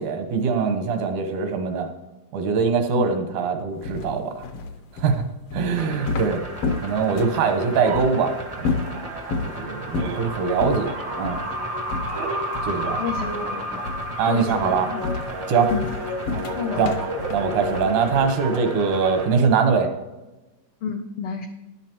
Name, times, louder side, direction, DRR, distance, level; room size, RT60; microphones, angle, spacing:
voice 1, 0.0-1.9 2.3-4.3 5.0-5.2 5.5-6.4 6.8-8.9 9.4-11.4 12.6-13.0 14.2-14.9 15.5-15.7 16.8-16.9 17.3-19.9, right 5 dB, 90° right, 6 dB, 2.5 m, -22 dB
sound 1, 3.8-7.5 7.9-8.1 8.6-9.5 9.9-10.2 10.6-10.8 11.2-11.5 11.9-12.9 13.1-13.5 13.8-14.2 14.5-18.4, left 4 dB, 70° left, 1.7 m, -30 dB
sound 2, 5.8-19.3, right 1 dB, 55° right, 0.4 m, -33 dB
sound 3, 7.8-9.7 9.9-19.5, right 1 dB, 75° right, 1.0 m, -34 dB
voice 2, 13.0-13.9 14.3-15.1 15.7-15.9 16.5-17.0 17.8-18.0 20.8-21.5, left 6 dB, 85° left, 4 dB, 1.2 m, -30 dB
13.0 x 10.5 x 3.0 m, 1.1 s
omnidirectional pair, 3.4 m